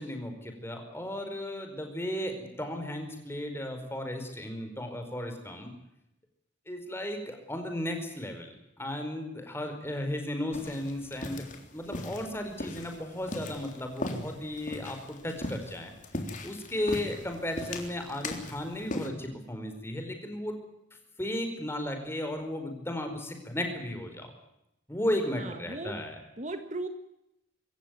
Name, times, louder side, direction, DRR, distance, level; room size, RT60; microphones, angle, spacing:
voice 1, 0.0-5.7 6.7-8.5 8.8-11.4 11.7-15.0 15.2-15.9 16.4-20.5 21.2-24.3 24.9-26.2, left 1 dB, 15° left, 5 dB, 4.8 m, -35 dB
sound 1, 10.5-19.1, left 1 dB, 40° left, 3.6 m, -39 dB
voice 2, 25.4-25.9 26.4-26.9, right 2 dB, 40° right, 8 dB, 1.7 m, -37 dB
25.5 x 15.0 x 9.3 m, 0.85 s
head